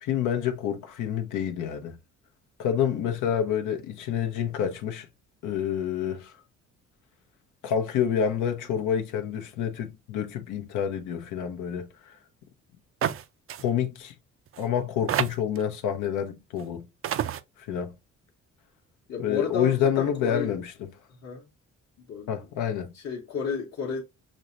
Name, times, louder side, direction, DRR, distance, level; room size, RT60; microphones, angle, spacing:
voice 1, 0.0-2.0 2.6-5.1 5.4-6.3 7.6-12.2 13.6-14.1 14.6-16.8 17.7-17.9 19.2-20.7 22.3-22.9, left 9 dB, 85° left, 0.7 m, -28 dB
sound 1, 13.0-13.2 13.5-13.6 14.5-14.6 15.1-15.6 16.6-16.7 17.0-17.4, right 10 dB, 45° right, 0.4 m, -28 dB
voice 2, 19.1-20.6 21.2-21.5 22.1-24.0, left 5 dB, 55° left, 1.0 m, -33 dB
6.2 x 2.1 x 2.5 m
cardioid pair, 90°, 30 cm